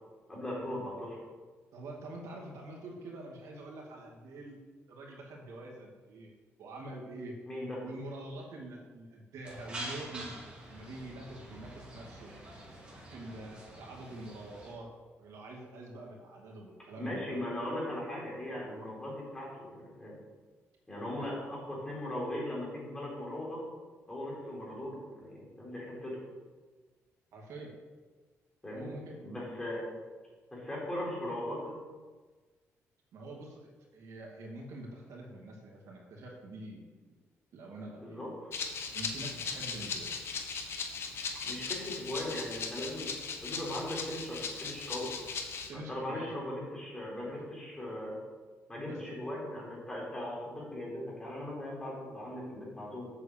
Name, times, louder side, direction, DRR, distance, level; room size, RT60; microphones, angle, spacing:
voice 1, 0.3-1.2 7.5-7.8 17.0-20.1 20.9-23.6 24.1-26.2 28.6-28.9 29.2-29.9 30.5-31.7 38.0-38.5 41.4-43.1 43.4-45.1 45.7-48.2 48.7-53.1, left 1 dB, 15° left, -5 dB, 3.7 m, -39 dB
voice 2, 1.7-4.6 4.9-6.3 6.6-7.4 7.8-10.4 10.7-12.3 13.1-14.9 15.2-17.4 21.2-21.3 27.3-27.7 28.7-29.2 33.1-36.8 37.5-38.2 38.9-40.1 45.7-46.3 47.3-47.4 48.9-49.0, right 1 dB, 75° right, -1 dB, 2.4 m, -45 dB
sound 1, 9.4-14.7, right 1 dB, 20° right, 3.4 m, -46 dB
Rattle (instrument), 38.5-45.7, left 5 dB, 50° left, 1.2 m, -38 dB
8.2 x 6.9 x 7.3 m, 1.4 s
cardioid pair, 150°, 5 cm